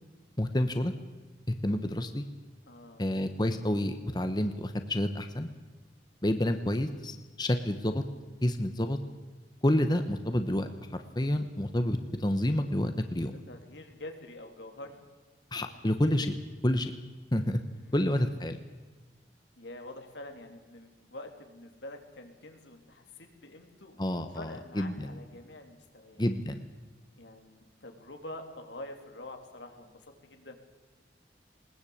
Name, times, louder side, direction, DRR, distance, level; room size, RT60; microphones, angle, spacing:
voice 1, 0.4-0.9 1.6-2.3 3.0-5.5 6.2-8.0 8.4-9.0 9.6-13.3 15.5-16.4 16.6-16.9 17.3-17.6 17.9-18.6 24.0-25.2 26.2-26.6, left 1 dB, 25° left, 8 dB, 1.1 m, -29 dB
voice 2, 2.6-3.0 13.5-15.0 17.7-18.1 19.6-26.2 27.2-30.6, left 1 dB, 85° left, 4 dB, 3.1 m, -46 dB
20.5 x 19.5 x 8.7 m, 1.3 s
head